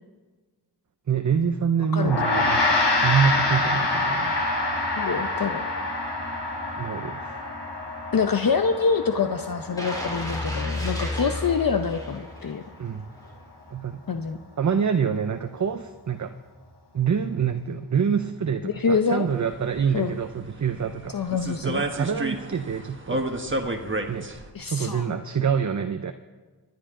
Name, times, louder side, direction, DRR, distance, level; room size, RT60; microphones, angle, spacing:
voice 1, 1.1-2.7 3.0-4.4 6.8-7.3 12.8-13.1 13.7-14.0 14.6-16.3 16.9-21.1 21.6-23.2 24.1-24.3 24.6-26.1, right 7 dB, 45° right, 8 dB, 0.7 m, -26 dB
voice 2, 1.9-2.3 5.0-5.6 8.1-12.6 14.1-14.4 18.6-19.3 19.9-20.2 21.1-21.8 24.5-25.1, left 5 dB, 55° left, 7 dB, 0.8 m, -25 dB
Gong, 2.0-11.6, left 2 dB, 85° left, 3.7 m, -26 dB
sound 1, 9.8-12.7 13.1-13.3, left 1 dB, 10° left, 3.9 m, -31 dB
sound 2, 19.3-24.5, right 1 dB, 30° right, 1.4 m, -31 dB
25.0 x 10.5 x 3.8 m, 1.3 s
wide cardioid pair, 85°, 41 cm